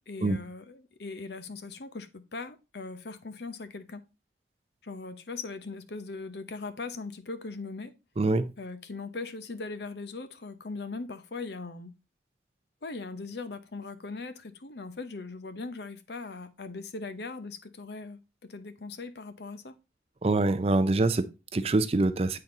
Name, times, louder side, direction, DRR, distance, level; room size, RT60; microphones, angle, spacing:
voice 1, 0.1-4.0 4.8-7.9 8.6-11.9 12.8-19.7, left 3 dB, 70° left, 0.8 m, -40 dB
voice 2, 8.2-8.5 20.2-22.4, right 2 dB, 35° right, 0.4 m, -25 dB
8.7 x 4.0 x 3.8 m
head